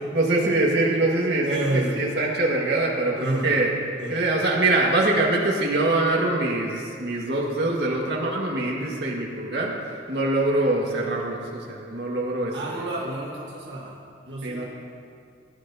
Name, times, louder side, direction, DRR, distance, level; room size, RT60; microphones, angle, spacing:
voice 1, 0.1-3.7 4.1-9.7 10.1-12.9 14.4-14.6, right 2 dB, 70° right, -3 dB, 1.7 m, -24 dB
voice 2, 1.4-2.1 3.2-3.5 4.0-4.2 12.5-14.6, right 1 dB, 85° right, -5 dB, 1.5 m, -30 dB
17.0 x 10.0 x 2.8 m, 2.3 s
head